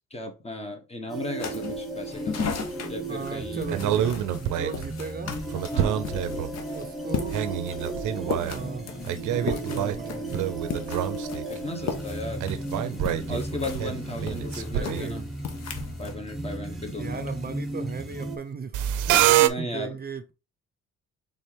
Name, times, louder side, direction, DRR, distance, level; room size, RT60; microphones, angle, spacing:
voice 1, 0.1-2.4 2.9-3.7 5.7-6.1 11.5-12.5 13.3-15.2 16.0-17.2 19.4-19.9, left 2 dB, 20° left, 1.3 m, -35 dB
sound 1, 1.1-18.4, right 2 dB, ahead, 1.3 m, -35 dB
sound 2, 1.4-16.1, left 6 dB, 60° left, 1.0 m, -37 dB
voice 2, 3.0-5.3 6.7-8.9 9.3-10.5 14.7-15.3 15.8-15.9 17.0-20.3, right 5 dB, 30° right, 0.6 m, -37 dB
sound 3, 3.7-4.9 5.5-6.6 7.1-8.8 9.0-11.6 11.9-12.0 12.4-15.2 18.7-19.5, right 12 dB, 80° right, 0.6 m, -26 dB
4.2 x 3.7 x 3.4 m
cardioid pair, 90°, 30 cm